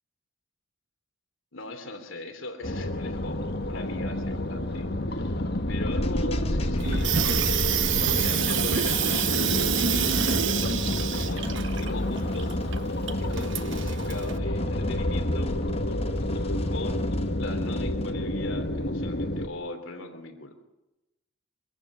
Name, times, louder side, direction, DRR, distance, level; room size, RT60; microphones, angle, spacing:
voice 1, 1.5-3.4 3.6-5.3 5.7-7.5 8.0-11.4 11.8-12.6 13.2-15.5 16.7-17.1 17.4-20.5, left 2 dB, 70° left, 6 dB, 3.1 m, -39 dB
sound 1, 2.6-19.5, left 1 dB, 50° left, 1.4 m, -30 dB
sound 2, 5.9-18.1, left 1 dB, 30° left, 1.1 m, -32 dB
Water tap faucet / Sink (filling or washing), 6.8-14.4, right 8 dB, 60° right, 1.0 m, -28 dB
24.0 x 14.5 x 8.5 m, 0.95 s
head